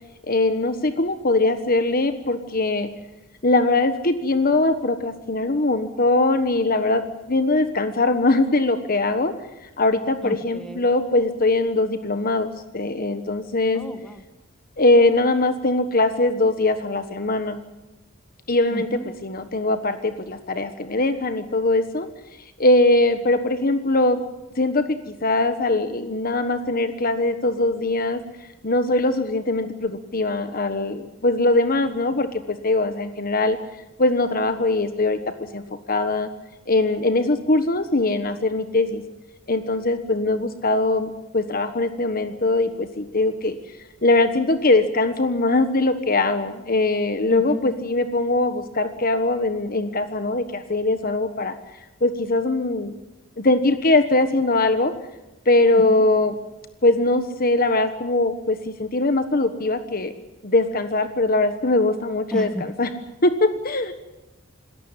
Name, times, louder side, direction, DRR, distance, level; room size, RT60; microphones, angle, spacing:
voice 1, 0.2-2.9 3.4-9.3 9.6-13.8 14.8-17.6 18.5-22.1 22.6-24.2 24.5-28.2 28.6-33.6 34.0-35.6 35.9-36.3 36.7-39.0 39.5-43.6 44.0-51.5 52.0-52.9 53.4-54.9 55.4-56.4 56.8-60.1 60.4-62.9 63.2-63.9, left 2 dB, 45° left, 9 dB, 1.3 m, -21 dB
voice 2, 10.2-10.9 13.7-14.2 18.7-19.1 47.3-47.6 55.7-56.0 62.3-62.6, equal, 5° left, 6 dB, 1.9 m, -32 dB
27.0 x 14.0 x 9.7 m, 1.0 s
head